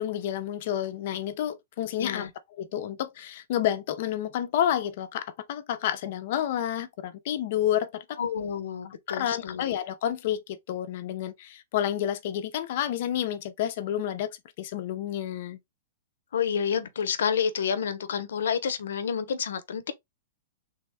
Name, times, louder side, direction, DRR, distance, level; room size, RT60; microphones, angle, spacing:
voice 1, 0.0-2.3 2.6-8.0 9.1-15.6, left 11 dB, 40° left, 0.5 m, -30 dB
voice 2, 2.0-2.3 8.2-9.7 16.3-19.9, left 7 dB, 85° left, 0.6 m, -29 dB
3.4 x 2.1 x 3.4 m
hypercardioid pair, 175°, 0 cm